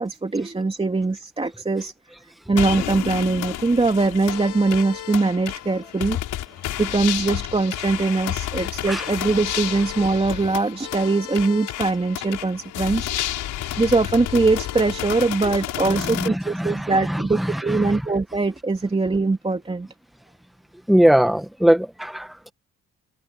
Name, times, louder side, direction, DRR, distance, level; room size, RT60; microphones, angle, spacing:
voice 1, 0.0-1.9 2.5-6.2 6.8-13.1 13.8-19.9, right 3 dB, 20° right, 2.7 m, -22 dB
sound 1, 2.6-16.3, left 13 dB, 85° left, 6.0 m, -30 dB
voice 2, 16.2-18.0 20.9-22.5, equal, ahead, 1.4 m, -21 dB
cardioid pair, 90°, 30 cm